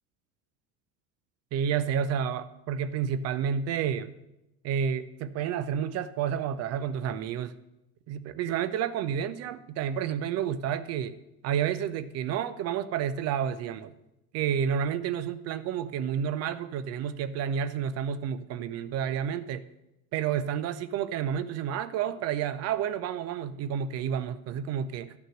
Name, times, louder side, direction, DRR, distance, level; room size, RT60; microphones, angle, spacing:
voice 1, 1.5-4.1 4.6-7.5 8.1-11.2 11.4-13.9 14.3-19.6 20.1-25.1, right 8 dB, 35° right, 14 dB, 0.5 m, -30 dB
11.5 x 6.3 x 6.4 m, 0.90 s
figure-of-eight pair, 65°, 47 cm